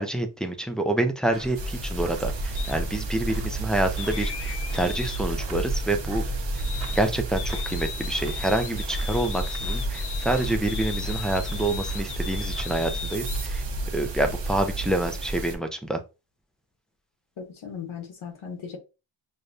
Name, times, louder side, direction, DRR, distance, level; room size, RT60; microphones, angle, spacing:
voice 1, 0.0-6.2 6.5-6.6 6.9-13.6 13.9-16.0, right 1 dB, ahead, 0.3 m, -27 dB
sound 1, 1.3-12.7, right 2 dB, 30° right, 1.2 m, -42 dB
sound 2, 1.5-15.5, right 2 dB, 70° right, 0.9 m, -31 dB
sound 3, 2.5-2.8 4.0-7.1 7.4-13.4, left 9 dB, 60° left, 0.6 m, -39 dB
voice 2, 17.4-18.8, left 6 dB, 85° left, 1.1 m, -37 dB
6.4 x 2.2 x 2.6 m
wide cardioid pair, 175°, 46 cm